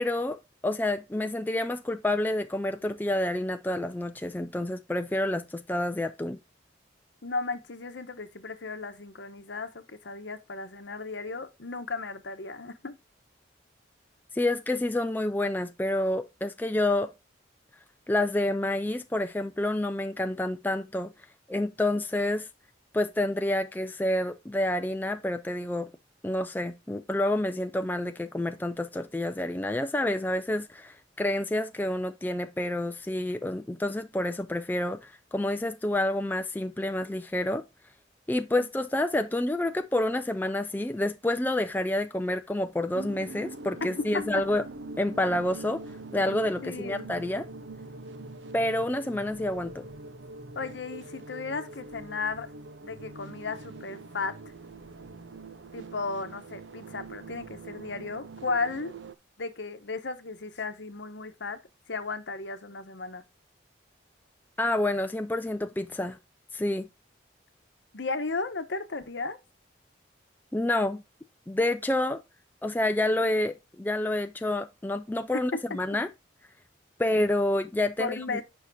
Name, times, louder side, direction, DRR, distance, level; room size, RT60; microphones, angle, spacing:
voice 1, 0.0-6.4 14.3-17.1 18.1-21.1 21.5-22.5 22.9-25.9 26.2-37.6 38.3-44.6 45.0-45.8 46.1-47.4 48.5-49.9 64.6-66.2 66.5-66.9 70.5-71.0 71.5-72.2 72.6-76.1 77.0-78.4, left 1 dB, 10° left, 0.3 m, -28 dB
voice 2, 7.2-12.9 46.6-47.1 50.6-52.5 52.8-54.4 55.7-58.9 59.4-61.6 61.9-63.2 67.9-69.4 78.0-78.4, left 4 dB, 70° left, 0.9 m, -35 dB
sound 1, 42.9-59.1, right 2 dB, 75° right, 0.7 m, -43 dB
8.4 x 5.7 x 2.6 m
head